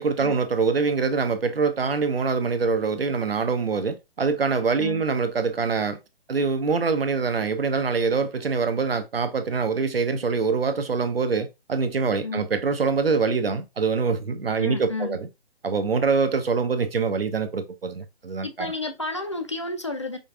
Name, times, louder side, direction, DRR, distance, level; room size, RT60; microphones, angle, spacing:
voice 1, 0.0-6.0 6.3-15.3 15.6-18.7, right 5 dB, 70° right, 0.7 m, -24 dB
voice 2, 14.6-15.2 18.4-20.2, left 3 dB, 30° left, 0.4 m, -31 dB
5.1 x 2.4 x 2.5 m
figure-of-eight pair, 140°, 31 cm